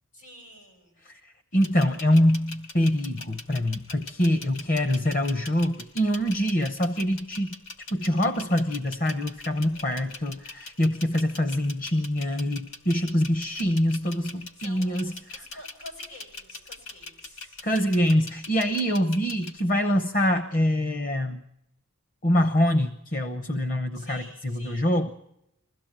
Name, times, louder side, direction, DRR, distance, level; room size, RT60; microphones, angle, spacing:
voice 1, 0.1-1.0 9.5-10.3 14.3-17.7 23.9-24.9, left 1 dB, 80° left, 3 dB, 7.9 m, -49 dB
voice 2, 1.5-7.6 7.9-15.4 17.6-21.4 22.2-24.2 24.5-25.1, equal, 35° left, 10 dB, 0.8 m, -25 dB
sound 1, 1.6-19.6, left 3 dB, 65° left, 2.9 m, -41 dB
22.0 x 16.0 x 8.9 m, 0.84 s
head